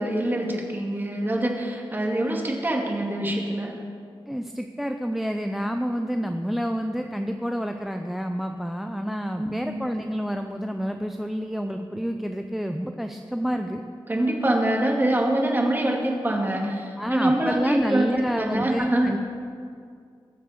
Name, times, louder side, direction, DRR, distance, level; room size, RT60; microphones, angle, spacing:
voice 1, 0.0-3.8 9.4-9.8 14.1-19.1, right 1 dB, 25° right, 0 dB, 2.3 m, -25 dB
voice 2, 4.3-13.8 17.0-19.2, equal, 5° right, 6 dB, 0.5 m, -28 dB
21.5 x 7.4 x 6.6 m, 2.3 s
wide cardioid pair, 130°, 9 cm